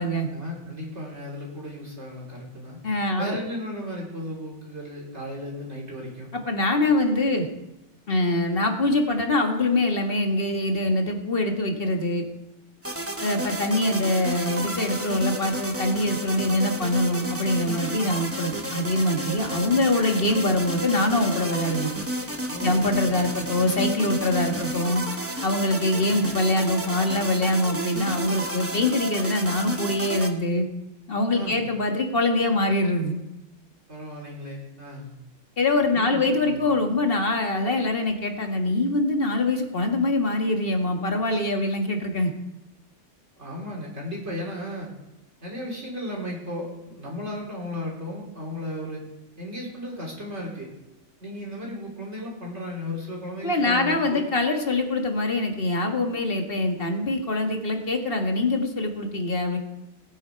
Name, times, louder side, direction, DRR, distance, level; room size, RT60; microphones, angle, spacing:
voice 1, 0.3-2.8 3.2-6.3 22.5-23.5 25.9-26.2 31.3-31.6 33.9-35.1 35.9-36.6 43.4-44.9 45.4-49.0 49.4-50.7 51.2-54.2, left 1 dB, 55° right, -3 dB, 3.7 m, -35 dB
voice 2, 2.8-3.4 6.3-7.5 8.1-12.3 13.2-21.9 22.6-25.0 25.4-30.7 31.1-33.2 35.6-42.3 53.4-59.6, left 2 dB, 45° left, 3 dB, 1.9 m, -24 dB
sound 1, 12.8-30.3, right 1 dB, 10° right, 0.9 m, -32 dB
19.5 x 9.4 x 4.6 m, 0.95 s
omnidirectional pair, 1.4 m